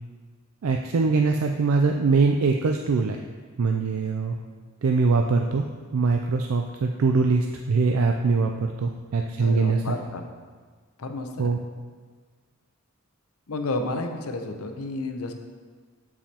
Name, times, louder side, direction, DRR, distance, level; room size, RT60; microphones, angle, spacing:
voice 1, 0.6-3.2 3.6-4.4 4.8-5.7 5.9-9.8 11.4-11.6, right 4 dB, 75° right, 3 dB, 0.4 m, -22 dB
voice 2, 9.4-10.3 11.0-11.6 13.5-15.3, left 2 dB, 85° left, 5 dB, 0.7 m, -31 dB
12.5 x 4.8 x 2.9 m, 1.5 s
head